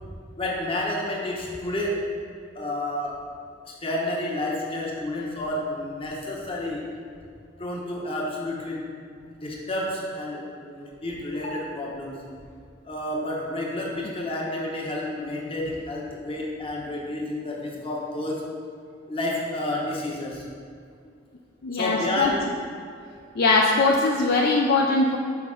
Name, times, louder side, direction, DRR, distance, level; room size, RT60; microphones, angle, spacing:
voice 1, 0.4-2.0 2.5-3.2 3.6-6.9 7.6-8.9 9.4-12.2 12.8-18.5 19.1-20.4 21.7-22.5, left 1 dB, 30° left, -3 dB, 1.0 m, -30 dB
voice 2, 21.6-22.3 23.4-25.2, left 3 dB, 55° left, 0 dB, 0.4 m, -21 dB
5.8 x 5.2 x 3.7 m, 2.2 s
head